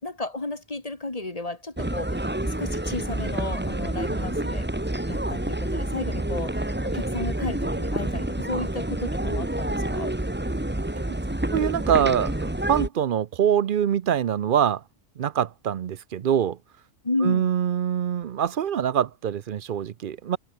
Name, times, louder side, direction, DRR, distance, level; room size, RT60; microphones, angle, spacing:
voice 1, 0.0-4.7 5.1-10.1 17.0-17.5, left 2 dB, 30° left, 2.5 m, -33 dB
sound 1, 1.8-12.9, right 1 dB, 10° right, 1.3 m, -28 dB
voice 2, 11.5-14.8 15.2-16.6 17.2-20.4, right 9 dB, 55° right, 0.7 m, -24 dB
omnidirectional pair, 1.3 m